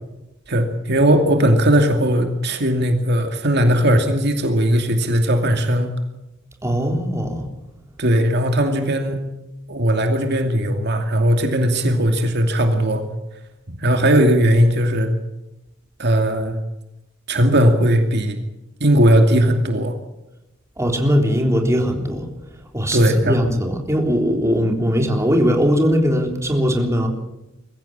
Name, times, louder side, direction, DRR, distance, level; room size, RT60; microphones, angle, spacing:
voice 1, 0.5-5.9 8.0-9.2 9.7-13.0 13.7-15.1 16.0-16.5 17.3-18.4 18.8-19.9 22.9-23.4, equal, 60° right, 5 dB, 2.5 m, -18 dB
voice 2, 6.6-7.5 20.8-22.3 22.7-27.1, equal, 15° right, 2 dB, 3.6 m, -20 dB
22.5 x 15.5 x 8.8 m, 0.94 s
head